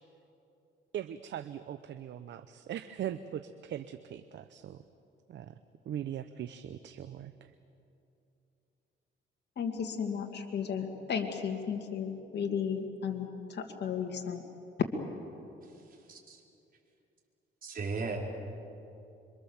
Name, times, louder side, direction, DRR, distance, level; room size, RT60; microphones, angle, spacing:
voice 1, 0.9-4.8 5.3-5.5 5.9-7.5, right 10 dB, 65° right, 11 dB, 0.8 m, -40 dB
voice 2, 9.6-14.4, left 7 dB, 60° left, 3 dB, 2.2 m, -34 dB
voice 3, 15.6-16.4 17.6-18.2, right 4 dB, 45° right, -1 dB, 5.0 m, -38 dB
27.0 x 24.0 x 7.3 m, 2.8 s
cardioid pair, 90°, 20 cm